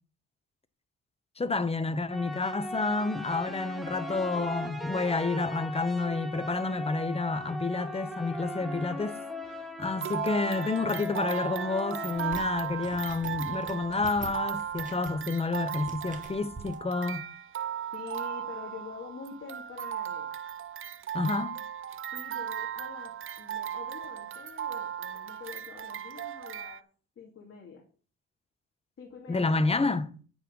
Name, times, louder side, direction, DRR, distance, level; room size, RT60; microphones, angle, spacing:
voice 1, 1.4-9.2 9.8-17.2 21.1-21.6 29.3-30.1, left 3 dB, 20° left, 1.0 m, -29 dB
sound 1, 2.1-12.4, equal, ahead, 2.1 m, -38 dB
sound 2, 9.8-26.8, right 10 dB, 45° right, 0.6 m, -37 dB
sound 3, 12.1-16.8, right 3 dB, 25° right, 2.1 m, -46 dB
voice 2, 17.9-20.3 22.1-26.8 27.2-27.8 29.0-30.0, left 6 dB, 45° left, 2.6 m, -46 dB
8.6 x 8.2 x 5.4 m
cardioid pair, 90°, 30 cm